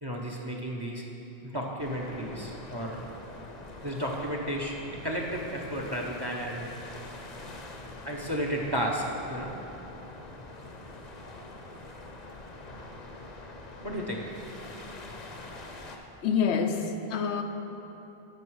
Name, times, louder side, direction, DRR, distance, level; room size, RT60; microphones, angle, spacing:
voice 1, 0.0-1.0 1.4-3.0 3.8-6.7 8.0-9.5 13.8-14.2, equal, 25° right, 0 dB, 0.8 m, -33 dB
sound 1, 1.8-16.0, left 2 dB, 45° left, 0.8 m, -44 dB
voice 2, 16.2-17.4, left 6 dB, 85° left, 6 dB, 1.0 m, -27 dB
12.0 x 6.2 x 4.7 m, 3.0 s
omnidirectional pair, 1.1 m